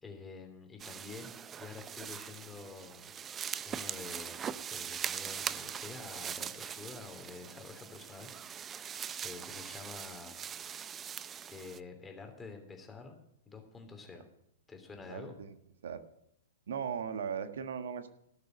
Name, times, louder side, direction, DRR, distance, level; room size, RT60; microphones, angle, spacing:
voice 1, 0.0-1.3 1.6-4.4 4.7-8.3 8.8-10.4 11.4-13.2 13.5-14.3 14.7-15.3, left 4 dB, 15° left, 4 dB, 3.1 m, -48 dB
sound 1, 0.8-11.8, right 8 dB, 20° right, 0.5 m, -41 dB
voice 2, 15.1-15.5 15.8-16.0 16.7-18.1, right 7 dB, 70° right, 9 dB, 1.4 m, -38 dB
17.5 x 6.7 x 6.3 m, 0.78 s
hypercardioid pair, 115°, 0 cm